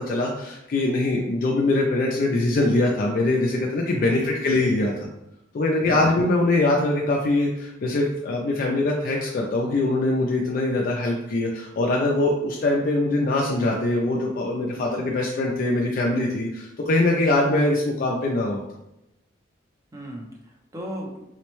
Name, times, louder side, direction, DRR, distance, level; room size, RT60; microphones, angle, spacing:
voice 1, 0.0-4.9 5.5-18.6, left 2 dB, 45° left, -1 dB, 0.3 m, -23 dB
voice 2, 4.1-4.5 5.8-6.0 14.7-15.1 19.9-21.2, right 1 dB, 15° right, -1 dB, 0.5 m, -37 dB
4.1 x 2.1 x 3.0 m, 0.88 s
head